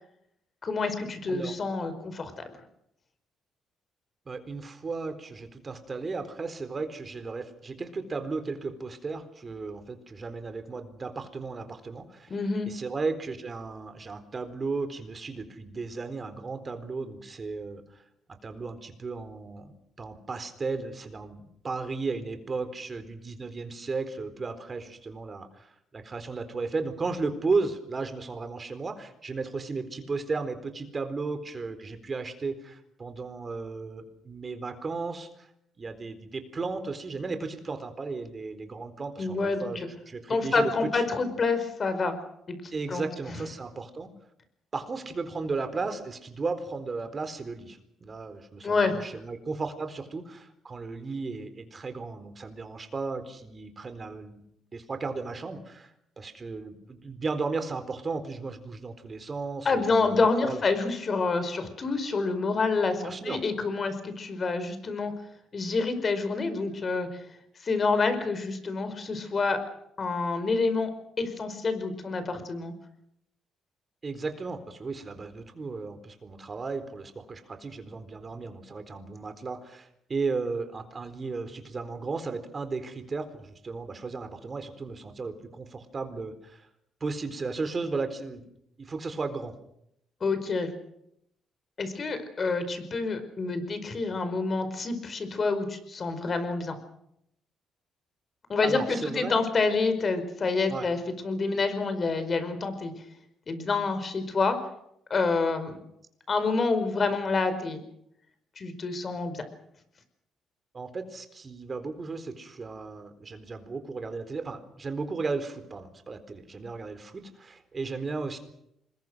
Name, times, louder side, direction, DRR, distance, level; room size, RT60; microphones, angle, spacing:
voice 1, 0.6-2.3 12.3-12.7 39.2-39.7 40.3-42.1 42.5-42.6 42.9-43.4 48.6-48.9 59.6-65.1 65.5-67.2 67.6-69.6 70.0-70.9 71.2-72.7 90.2-90.7 91.8-96.8 98.5-102.9 103.5-104.6 105.1-105.8 106.3-107.8 108.6-109.4, left 4 dB, 40° left, 10 dB, 5.0 m, -27 dB
voice 2, 4.3-12.3 12.7-18.0 18.4-35.5 35.8-41.1 42.7-44.1 44.7-54.4 54.7-60.7 63.0-63.4 74.0-86.7 87.0-88.4 88.8-89.5 98.6-99.3 100.7-100.9 110.7-118.4, right 4 dB, 35° right, 9 dB, 4.1 m, -35 dB
26.0 x 22.0 x 6.3 m, 0.77 s
cardioid pair, 90°, 0 cm